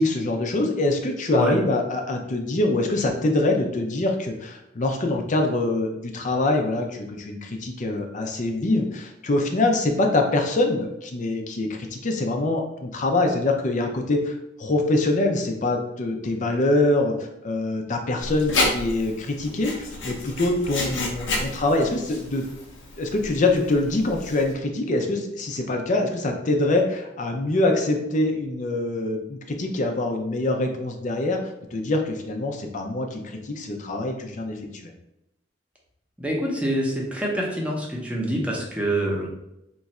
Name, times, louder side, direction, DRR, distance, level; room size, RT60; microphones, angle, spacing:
voice 1, 0.0-17.1 17.4-22.4 23.0-34.9, left 2 dB, 45° left, 4 dB, 0.5 m, -24 dB
Writing, 18.2-24.5, left 2 dB, 80° left, 0.8 m, -31 dB
voice 2, 36.2-39.3, right 1 dB, 5° right, -2 dB, 0.7 m, -25 dB
3.0 x 2.4 x 4.2 m, 0.86 s
head